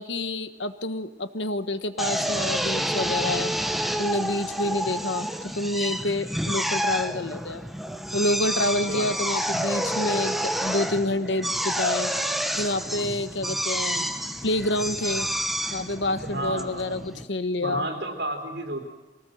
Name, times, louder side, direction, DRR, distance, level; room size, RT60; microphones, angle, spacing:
voice 1, 0.0-3.5 4.0-5.3 5.5-7.6 8.1-12.1 12.6-14.1 14.4-15.3 15.7-17.9, left 2 dB, 70° left, 11 dB, 1.3 m, -28 dB
Drill, 2.0-17.3, equal, ahead, 1.0 m, -29 dB
voice 2, 16.2-17.2 17.6-18.9, right 1 dB, 65° right, 3 dB, 3.5 m, -32 dB
24.0 x 19.0 x 7.8 m, 1.2 s
head